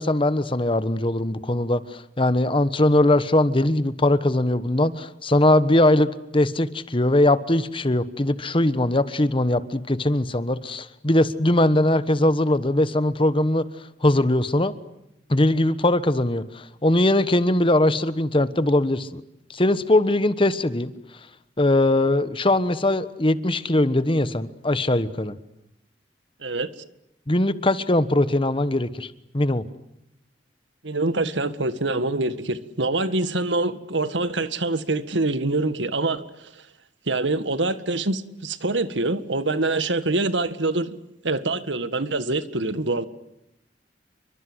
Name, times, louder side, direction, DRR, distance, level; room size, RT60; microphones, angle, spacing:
voice 1, 0.0-13.7 14.0-14.7 15.3-19.2 19.5-20.9 21.6-25.4 27.3-29.6, left 1 dB, 30° left, 1.3 m, -21 dB
voice 2, 30.8-36.5 37.1-40.9 41.2-43.1, right 2 dB, 90° right, 1.8 m, -25 dB
29.0 x 24.0 x 8.1 m
head